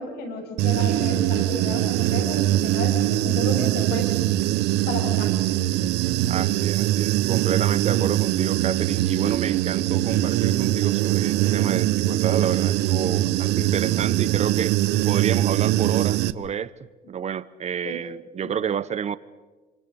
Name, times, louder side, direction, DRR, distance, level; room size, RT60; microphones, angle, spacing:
voice 1, 0.0-4.1 4.9-5.3 17.8-18.0 18.4-18.6, left 2 dB, 75° left, 7.6 m, -32 dB
Human voice / Buzz, 0.6-16.3, right 14 dB, 85° right, 0.9 m, -22 dB
voice 2, 6.3-14.8 15.1-16.7 17.1-19.2, right 8 dB, 40° right, 0.9 m, -29 dB
28.0 x 27.0 x 5.3 m
cardioid pair, 110°, 17 cm